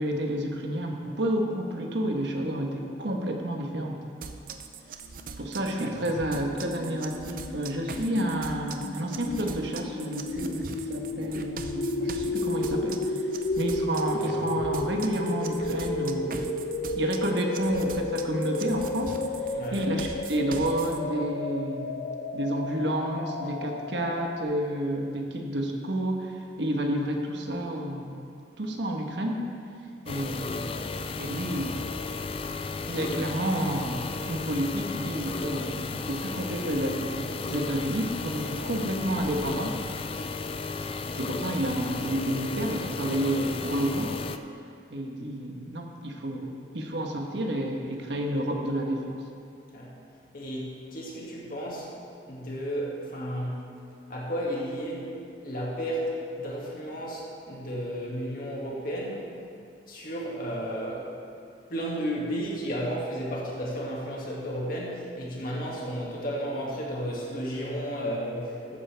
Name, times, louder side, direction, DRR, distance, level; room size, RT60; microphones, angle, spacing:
voice 1, 0.0-4.0 5.4-13.2 13.6-16.5 16.9-19.2 19.7-22.0 22.3-28.2 28.6-29.4 30.0-30.8 31.1-31.9 32.9-39.8 40.9-44.1 44.9-49.2, right 1 dB, 70° right, 1 dB, 1.2 m, -30 dB
sound 1, 4.2-21.0, right 4 dB, 45° right, 0.5 m, -41 dB
sound 2, 5.3-24.4, left 2 dB, 65° left, 0.6 m, -33 dB
sound 3, 30.1-44.4, left 4 dB, 30° left, 0.3 m, -34 dB
voice 2, 50.3-51.9 52.3-53.7 54.1-59.3 59.9-61.1 61.7-68.8, equal, 50° left, -4 dB, 2.1 m, -33 dB
13.5 x 9.4 x 3.4 m, 2.5 s
head